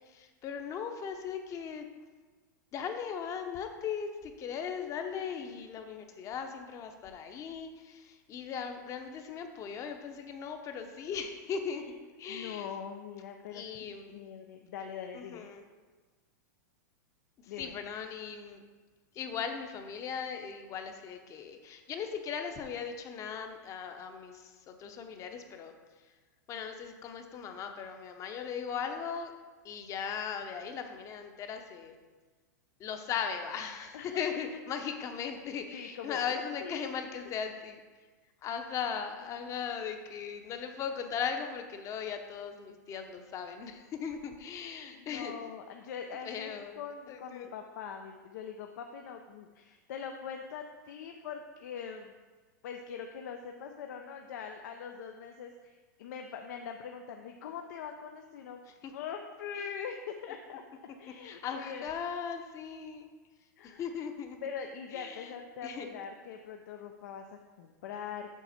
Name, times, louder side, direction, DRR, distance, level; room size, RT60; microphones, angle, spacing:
voice 1, 0.1-1.9 2.7-11.8 12.2-12.7 13.5-14.2 15.1-15.6 17.4-18.6 19.1-25.7 26.0-26.1 26.5-29.3 29.6-32.0 32.8-37.8 38.4-45.3 46.2-46.8 47.1-47.5 58.7-58.9 61.2-63.1 63.6-64.4 64.9-65.3 65.6-65.9, left 7 dB, 35° left, 6 dB, 0.9 m, -38 dB
voice 2, 12.3-15.5 17.5-17.7 33.9-34.2 35.7-36.9 45.0-52.1 52.6-58.6 58.9-60.6 61.0-61.8 63.6-63.8 64.4-68.4, left 7 dB, 70° left, 4 dB, 0.6 m, -42 dB
7.2 x 5.7 x 4.3 m, 1.4 s
hypercardioid pair, 125°, 10 cm